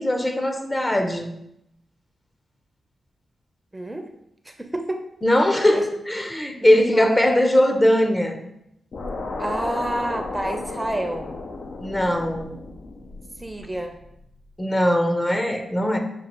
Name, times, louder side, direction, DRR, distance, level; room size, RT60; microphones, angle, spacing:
voice 1, 0.0-1.3 5.2-8.4 11.8-12.5 14.6-16.0, left 1 dB, 25° left, 5 dB, 0.7 m, -20 dB
voice 2, 3.7-4.1 4.4-5.0 5.7-5.8 6.6-7.2 9.4-11.3 13.4-14.0, right 1 dB, 15° right, 4 dB, 0.6 m, -29 dB
sound 1, 8.9-14.2, left 3 dB, 65° left, 0.5 m, -34 dB
6.7 x 2.4 x 3.0 m, 0.79 s
supercardioid pair, 40°, 0 cm